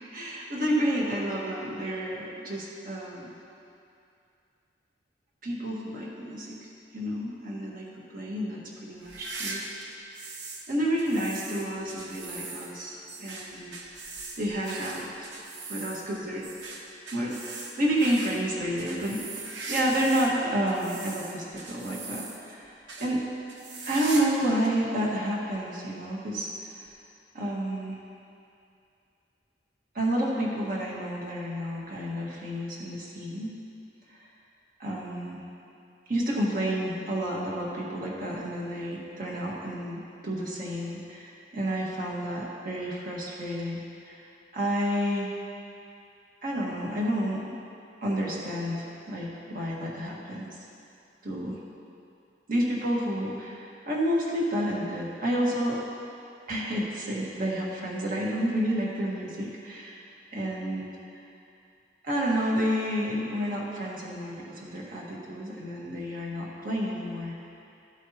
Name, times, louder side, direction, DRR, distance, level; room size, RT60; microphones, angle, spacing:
voice 1, 0.1-3.3 5.4-6.6 6.9-7.8 8.1-9.6 10.7-15.3 15.7-16.5 17.1-23.2 23.9-26.7 27.3-28.0 29.9-33.6 34.1-34.3 34.8-35.4 36.1-44.2 44.5-45.3 46.4-47.5 48.0-50.5 51.2-51.6 52.5-55.8 56.5-60.0 60.3-60.9 62.0-67.5, equal, 55° right, -4 dB, 1.6 m, -30 dB
sound 1, 9.0-10.7 11.0-20.4 20.7-22.5 22.9-23.1 23.5-24.4 24.6-24.7 25.5-25.6 26.9-27.0, right 3 dB, 75° right, 1.0 m, -40 dB
13.5 x 8.1 x 2.9 m, 2.6 s
head